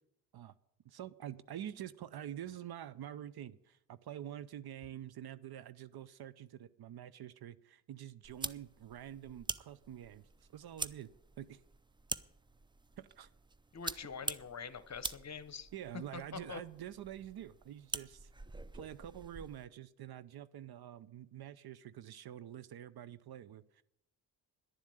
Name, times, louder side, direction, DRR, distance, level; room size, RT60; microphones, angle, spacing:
voice 1, 0.8-10.2 10.5-11.1 11.4-11.6 13.0-13.3 15.7-18.3 18.7-23.8, right 11 dB, 55° right, 18 dB, 0.7 m, -47 dB
sound 1, 8.2-19.7, right 3 dB, 10° right, 0.4 m, -45 dB
voice 2, 13.7-15.7 15.9-16.6, left 6 dB, 35° left, 14 dB, 1.0 m, -45 dB
11.0 x 7.2 x 9.2 m, 0.79 s
supercardioid pair, 70°, 46 cm